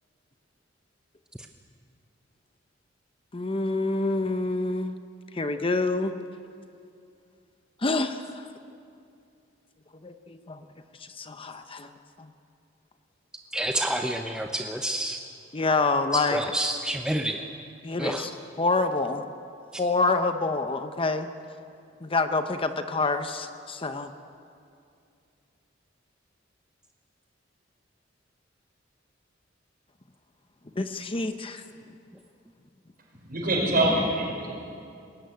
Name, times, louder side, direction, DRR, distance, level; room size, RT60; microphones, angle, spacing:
voice 1, 3.3-4.9 5.3-6.1 7.8-8.5 10.0-10.6 11.2-11.9 15.5-16.4 17.8-18.3 18.6-19.2 19.8-21.3 22.0-24.1 30.8-31.6, left 3 dB, 30° left, 8 dB, 0.8 m, -27 dB
voice 2, 13.5-15.2 16.1-17.4 18.0-18.3, right 1 dB, 5° right, 4 dB, 0.7 m, -28 dB
voice 3, 33.3-34.5, right 1 dB, 50° right, -1 dB, 5.8 m, -24 dB
20.5 x 15.5 x 9.4 m, 2.5 s
head